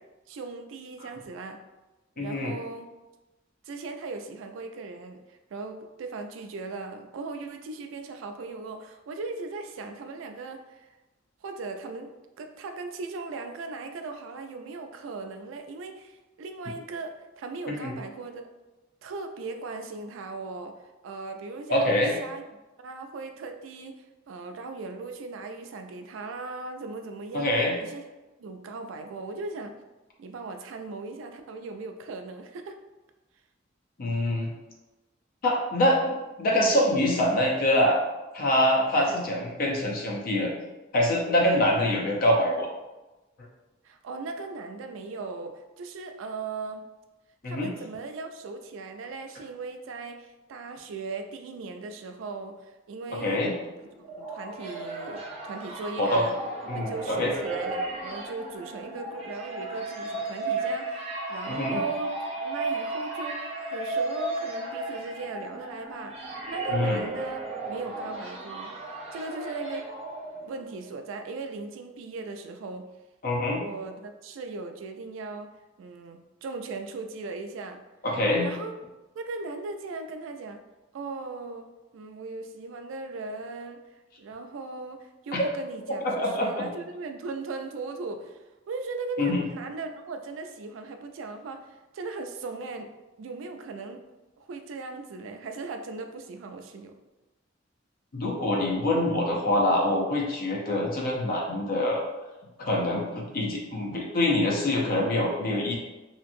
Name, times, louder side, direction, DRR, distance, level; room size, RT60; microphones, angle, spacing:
voice 1, 0.3-1.6 2.2-2.9 3.6-10.9 11.4-18.5 19.0-20.8 21.0-22.4 22.8-27.5 27.8-28.0 28.4-29.8 30.2-32.8 38.9-39.2 43.8-46.8 47.4-53.4 54.2-56.4 56.7-67.4 67.7-69.9 70.4-72.8 73.5-75.5 75.8-77.8 78.4-78.8 79.1-80.6 80.9-81.7 81.9-83.8 84.2-92.9 93.2-94.0 94.4-96.9, right 3 dB, 80° right, 6 dB, 0.3 m, -38 dB
voice 2, 2.2-2.5 17.7-17.9 21.7-22.2 27.3-27.8 34.0-34.5 35.4-38.0 38.3-40.5 40.9-42.7 47.4-47.7 53.1-53.5 56.0-56.2 56.7-57.3 61.5-61.8 66.7-67.0 73.2-73.6 78.0-78.5 85.3-85.5 86.0-86.7 89.2-89.4 98.1-102.0 102.6-105.8, left 1 dB, 50° left, -1 dB, 0.6 m, -25 dB
sound 1, 53.8-70.7, right 2 dB, 30° right, 0.5 m, -34 dB
2.9 x 2.5 x 2.5 m, 1.1 s
head